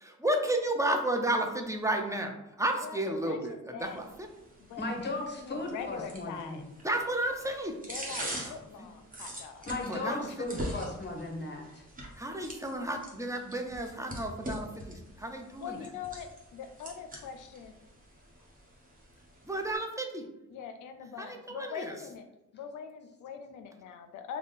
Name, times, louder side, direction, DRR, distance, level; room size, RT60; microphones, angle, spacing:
voice 1, 0.0-4.3 6.8-7.8 8.4-8.9 9.9-10.5 12.2-15.8 19.4-20.3 21.2-22.0, right 1 dB, 10° right, 3 dB, 0.6 m, -32 dB
voice 2, 2.8-4.0 4.6-6.7 7.9-9.7 10.0-10.4 15.6-17.7 20.5-22.3 22.5-24.4, left 7 dB, 85° left, 8 dB, 0.5 m, -43 dB
sound 1, 3.8-19.8, equal, 30° right, 1.1 m, -44 dB
voice 3, 4.8-6.6 9.7-11.8, left 2 dB, 35° left, 2 dB, 1.0 m, -36 dB
3.5 x 2.2 x 4.0 m, 0.92 s
cardioid pair, 70°, 30 cm